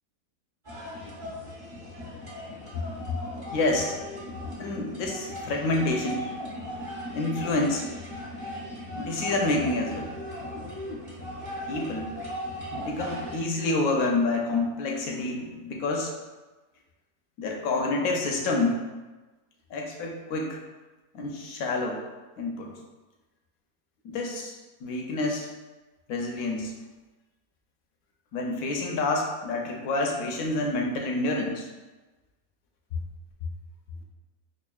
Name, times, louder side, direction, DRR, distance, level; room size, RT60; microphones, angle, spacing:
sound 1, 0.7-13.4, equal, 40° right, 0.8 m, -37 dB
voice 1, 3.5-4.0 4.6-6.3 7.1-7.8 8.9-10.1 11.7-12.1 12.7-16.1 17.4-18.8 19.7-20.6 21.1-22.0 22.4-22.7 24.0-24.5 24.8-25.5 26.1-26.7 28.3-31.7, left 2 dB, 70° left, 0 dB, 1.0 m, -28 dB
5.2 x 2.4 x 2.3 m, 1.2 s
omnidirectional pair, 1.6 m